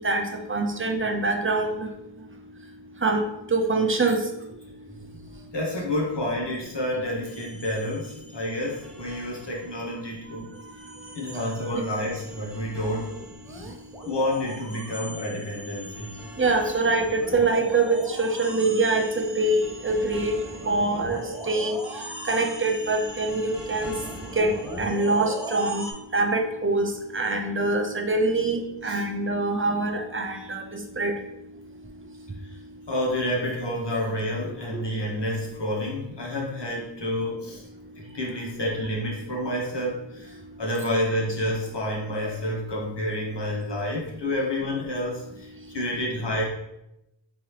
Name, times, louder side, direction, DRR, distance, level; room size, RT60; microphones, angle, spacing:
voice 1, 0.0-1.9 3.0-3.2 3.5-4.2 11.7-11.8 16.4-20.4 20.7-21.8 22.3-23.9 24.4-25.9 26.1-31.1, right 2 dB, 30° right, 4 dB, 0.5 m, -24 dB
voice 2, 5.5-10.5 11.1-13.1 14.0-16.1 28.8-29.0 32.9-37.6 38.1-46.4, left 1 dB, 65° left, -3 dB, 1.2 m, -29 dB
sound 1, 7.2-10.0 10.3-25.9, equal, ahead, 0.8 m, -40 dB
3.7 x 3.0 x 3.2 m, 0.88 s
wide cardioid pair, 45°, 45 cm